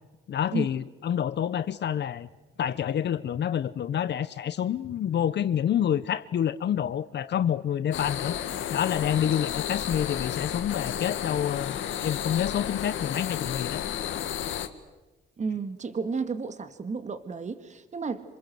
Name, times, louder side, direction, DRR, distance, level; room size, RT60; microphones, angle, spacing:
voice 1, 0.3-2.3 2.6-8.3 8.7-13.8, left 9 dB, 60° left, 13 dB, 1.0 m, -28 dB
sound 1, 7.9-14.7, left 10 dB, 75° left, 2.0 m, -32 dB
voice 2, 15.4-18.2, right 4 dB, 35° right, 10 dB, 2.0 m, -32 dB
27.5 x 26.5 x 7.8 m, 1.1 s
cardioid pair, 90°, 20 cm